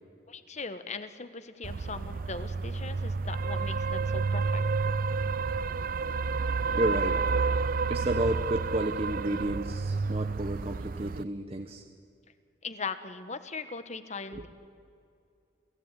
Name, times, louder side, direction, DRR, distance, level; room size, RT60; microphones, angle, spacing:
voice 1, 0.3-4.6 12.6-14.5, left 4 dB, 40° left, 11 dB, 1.4 m, -39 dB
sound 1, 1.6-11.2, right 4 dB, 50° right, 0.5 m, -30 dB
voice 2, 6.7-7.2 7.9-11.8 14.3-14.5, right 1 dB, 35° right, 5 dB, 1.1 m, -31 dB
29.5 x 15.5 x 9.2 m, 2.4 s
head